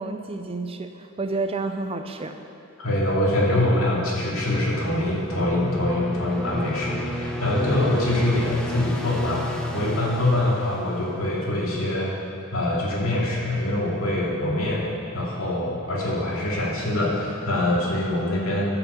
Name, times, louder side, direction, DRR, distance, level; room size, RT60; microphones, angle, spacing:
voice 1, 0.0-2.4, right 3 dB, 25° right, 7 dB, 0.5 m, -30 dB
voice 2, 2.8-12.1 12.5-14.8 15.1-18.7, left 1 dB, 75° left, -4 dB, 2.6 m, -24 dB
sound 1, 4.3-11.6, equal, 5° left, 0.8 m, -32 dB
12.5 x 5.9 x 6.9 m, 2.6 s
head